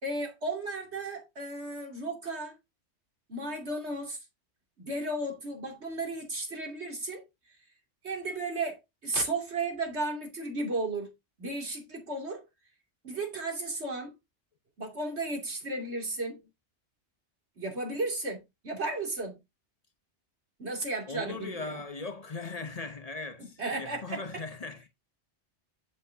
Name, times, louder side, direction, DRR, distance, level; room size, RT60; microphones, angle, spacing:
voice 1, 0.0-2.5 3.3-4.2 4.8-7.2 8.0-11.1 11.4-12.4 13.0-14.1 14.8-16.4 17.6-19.4 20.6-21.8 23.6-24.4, right 2 dB, 70° right, 3.0 m, -34 dB
voice 2, 21.1-24.9, left 4 dB, 35° left, 0.9 m, -39 dB
8.6 x 7.1 x 2.7 m
omnidirectional pair, 1.2 m